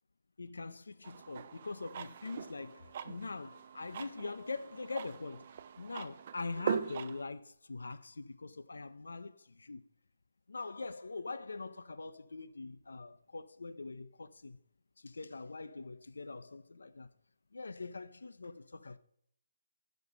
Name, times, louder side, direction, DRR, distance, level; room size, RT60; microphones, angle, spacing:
voice 1, 0.4-9.8 10.5-14.6 15.0-17.1 17.5-19.0, left 3 dB, 85° left, 0.7 m, -43 dB
sound 1, 1.0-7.2, right 8 dB, 25° right, 0.4 m, -41 dB
10.5 x 5.4 x 6.0 m
hypercardioid pair, 180°, 0 cm